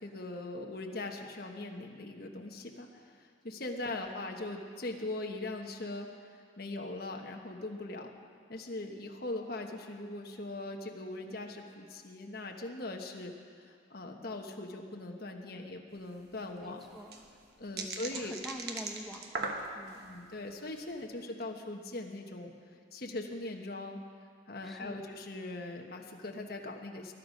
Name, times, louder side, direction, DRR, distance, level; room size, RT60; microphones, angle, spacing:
voice 1, 0.0-6.1 6.6-8.1 8.5-13.3 13.6-16.8 17.6-18.3 20.0-22.5 22.9-24.0 24.5-27.1, left 2 dB, 55° left, 2 dB, 1.3 m, -40 dB
sound 1, 16.0-16.1 16.3-16.4 16.8-20.1 20.6-20.9, right 3 dB, 55° right, 1.3 m, -39 dB
voice 2, 16.6-17.3 17.7-20.1 24.6-25.1, equal, ahead, 0 dB, 1.1 m, -46 dB
20.5 x 11.5 x 5.3 m, 2.1 s
head